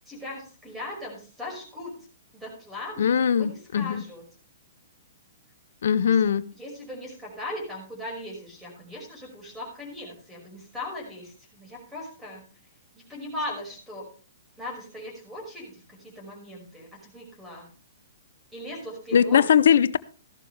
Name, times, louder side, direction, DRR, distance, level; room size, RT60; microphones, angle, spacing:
voice 1, 0.1-1.9 2.3-4.2 6.0-6.2 6.5-12.4 13.1-14.1 14.6-17.7 18.5-19.4, left 1 dB, 5° right, 5.7 m, -38 dB
voice 2, 3.0-4.0 5.8-6.4 19.1-20.0, left 8 dB, 70° left, 0.6 m, -20 dB
14.5 x 11.5 x 3.4 m
hypercardioid pair, 130°, 0 cm